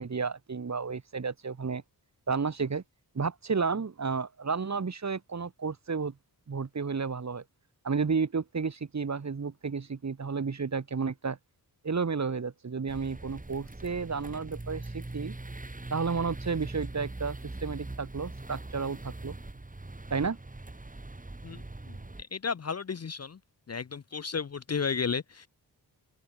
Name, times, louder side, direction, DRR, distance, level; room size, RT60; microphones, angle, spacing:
voice 1, 0.0-1.8 2.3-2.8 3.1-6.1 6.5-7.4 7.8-11.4 11.8-15.3 15.9-19.4 20.1-20.4, right 5 dB, 45° right, 1.4 m, -32 dB
sound 1, 12.9-22.2, right 2 dB, 20° right, 2.3 m, -42 dB
voice 2, 21.4-23.4 23.7-25.5, left 5 dB, 40° left, 0.6 m, -33 dB
wide cardioid pair, 75°, 40 cm